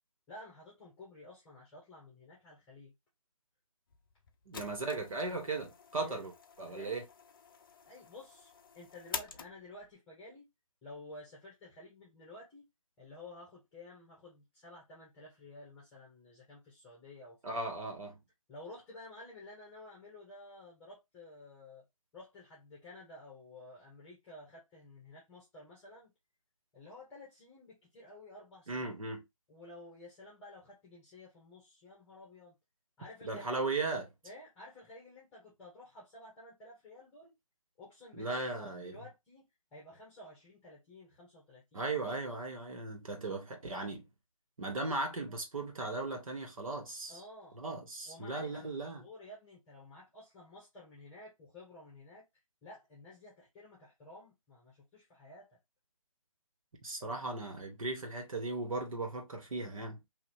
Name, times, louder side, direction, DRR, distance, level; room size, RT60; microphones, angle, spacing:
voice 1, 0.3-2.9 5.9-6.3 6.7-7.0 7.9-10.5 10.8-12.6 13.0-17.4 18.5-21.8 22.1-26.1 26.7-28.8 29.5-32.5 33.0-33.5 34.2-37.3 37.8-41.9 47.1-47.6 48.0-52.2 52.6-55.6 57.0-57.2, left 2 dB, 10° left, 1.1 m, -52 dB
sound 1, 3.9-9.9, left 5 dB, 40° left, 0.5 m, -48 dB
voice 2, 4.4-6.3 6.6-7.0 17.4-18.2 28.7-29.2 33.2-34.1 38.1-39.0 41.7-44.1 44.6-47.2 47.5-49.0 56.8-60.0, right 3 dB, 70° right, 1.6 m, -37 dB
2.9 x 2.7 x 4.3 m
hypercardioid pair, 155°, 18 cm